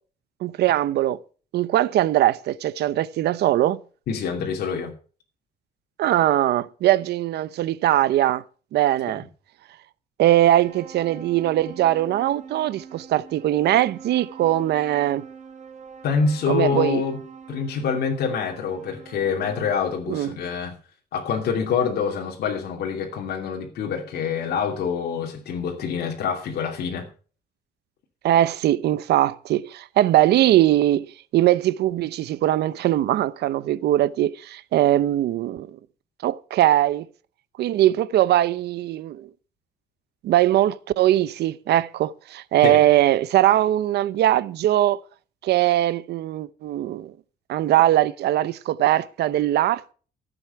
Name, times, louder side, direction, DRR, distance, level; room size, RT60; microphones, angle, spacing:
voice 1, 0.4-1.2 1.5-3.8 6.0-8.4 8.7-9.2 10.2-15.3 16.5-17.0 20.1-20.4 28.2-35.7 36.2-37.0 37.6-39.3 40.2-45.0 45.4-47.1 47.5-49.9, right 13 dB, 90° right, 0.8 m, -21 dB
voice 2, 4.1-4.9 16.0-17.2 17.5-20.7 21.1-27.1 42.6-42.8, left 6 dB, 70° left, 2.8 m, -26 dB
sound 1, 10.6-19.7, right 6 dB, 45° right, 2.6 m, -43 dB
15.0 x 8.1 x 5.9 m
cardioid pair, 160°, 17 cm